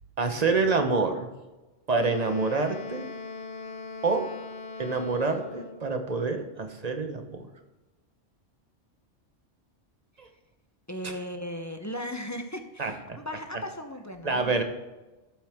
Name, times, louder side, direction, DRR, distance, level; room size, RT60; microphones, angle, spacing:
voice 1, 0.2-1.3 1.9-3.0 4.0-4.3 4.8-7.5 10.2-10.3 11.0-11.1 12.8-13.2 14.2-14.6, right 4 dB, 35° right, 6 dB, 1.1 m, -27 dB
Wind instrument woodwind instrument, 2.0-5.9, left 3 dB, 75° left, 1.1 m, -40 dB
voice 2, 10.9-14.6, left 1 dB, 15° left, 5 dB, 0.7 m, -37 dB
12.5 x 7.7 x 3.6 m, 1.1 s
omnidirectional pair, 1.2 m